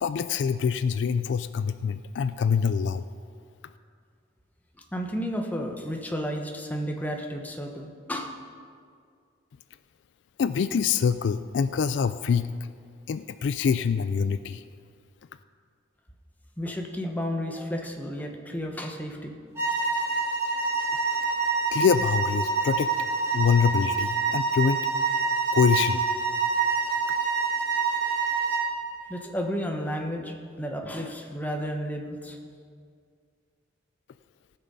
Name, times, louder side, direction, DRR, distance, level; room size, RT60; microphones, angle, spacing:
voice 1, 0.0-3.0 10.4-12.5 13.1-14.6 21.7-22.9 23.3-24.8 25.5-26.0, left 6 dB, 65° left, 13 dB, 0.3 m, -25 dB
voice 2, 4.9-8.3 16.6-19.3 29.1-32.4, equal, 10° left, 2 dB, 1.0 m, -32 dB
sound 1, 19.5-28.7, right 4 dB, 15° right, 3.6 m, -26 dB
18.0 x 6.2 x 5.5 m, 2.2 s
head